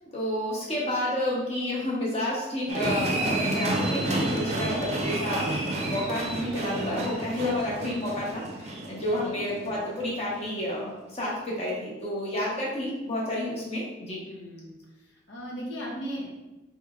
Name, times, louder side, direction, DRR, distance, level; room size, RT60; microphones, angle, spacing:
voice 1, 0.0-5.5 5.9-14.3, left 1 dB, 35° left, -5 dB, 1.1 m, -30 dB
sound 1, 2.7-10.0 10.3-10.4, right 2 dB, 35° right, 0.6 m, -30 dB
voice 2, 9.3-9.8 14.3-14.7 15.3-16.3, equal, 90° left, -3 dB, 0.9 m, -37 dB
4.7 x 3.0 x 2.4 m, 1.0 s
head